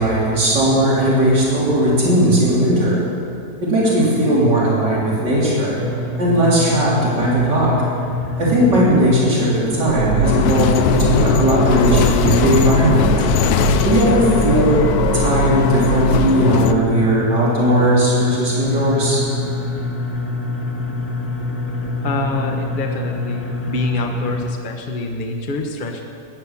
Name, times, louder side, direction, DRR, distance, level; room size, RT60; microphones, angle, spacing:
voice 1, 0.0-3.0 3.6-5.8 6.2-7.9 8.4-13.2 13.8-14.8 15.1-19.2, right 1 dB, 85° right, -6 dB, 4.0 m, -17 dB
sound 1, 5.7-24.5, left 2 dB, 10° left, 1.5 m, -26 dB
sound 2, 9.9-16.3, right 6 dB, 65° right, 1.0 m, -24 dB
sound 3, 10.2-16.7, left 8 dB, 70° left, 1.1 m, -20 dB
voice 2, 22.0-26.0, left 2 dB, 35° left, 2 dB, 1.1 m, -25 dB
15.0 x 10.5 x 7.3 m, 2.5 s
omnidirectional pair, 1.8 m